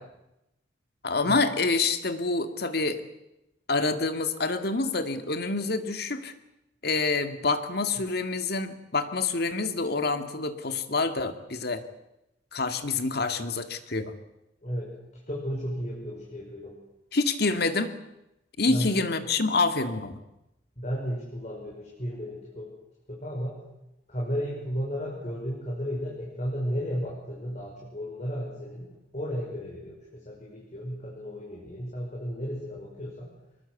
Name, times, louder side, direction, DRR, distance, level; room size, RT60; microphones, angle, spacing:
voice 1, 1.0-3.0 3.7-6.3 6.8-11.8 12.5-14.1 17.1-17.9 18.6-20.2, left 3 dB, 55° left, 9 dB, 2.1 m, -27 dB
voice 2, 14.6-14.9 15.3-16.8 18.7-19.0 20.8-22.7 23.1-23.6 24.1-28.9 29.1-33.3, equal, 40° left, -3 dB, 5.8 m, -34 dB
25.0 x 21.5 x 8.3 m, 0.89 s
head